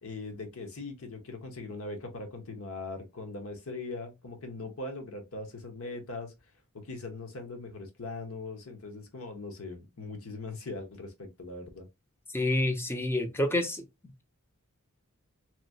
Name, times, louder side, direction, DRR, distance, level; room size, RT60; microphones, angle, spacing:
voice 1, 0.0-6.3 6.7-11.9, left 3 dB, 70° left, 1.0 m, -40 dB
voice 2, 12.3-13.8, left 1 dB, 10° left, 0.5 m, -28 dB
3.0 x 2.7 x 2.6 m
head